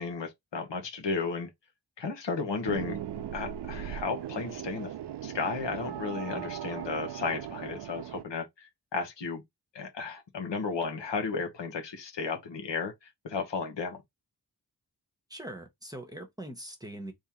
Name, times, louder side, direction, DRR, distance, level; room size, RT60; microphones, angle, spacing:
voice 1, 0.0-1.5 2.0-3.0 3.3-4.9 5.2-9.4 9.7-14.0, left 4 dB, 90° left, 1.1 m, -34 dB
sound 1, 2.6-8.2, right 10 dB, 70° right, 0.5 m, -38 dB
voice 2, 15.3-17.1, right 1 dB, 10° right, 1.0 m, -42 dB
3.7 x 3.0 x 2.9 m
wide cardioid pair, 95°, 42 cm